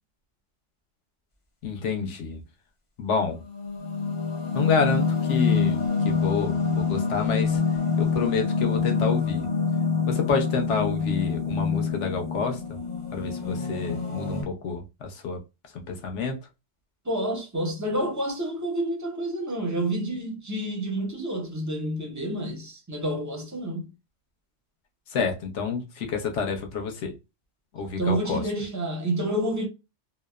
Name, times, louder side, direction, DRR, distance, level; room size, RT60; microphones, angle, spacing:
voice 1, 1.6-2.4 3.0-3.4 4.5-7.6 8.0-9.5 10.1-12.8 13.1-15.4 15.7-16.4 25.1-27.1 27.7-28.4, left 5 dB, 75° left, 1.0 m, -28 dB
sound 1, 3.2-14.4, left 5 dB, 40° left, 0.5 m, -26 dB
voice 2, 17.1-23.9 28.0-29.7, right 1 dB, 25° right, 0.4 m, -29 dB
2.8 x 2.0 x 2.2 m
omnidirectional pair, 1.2 m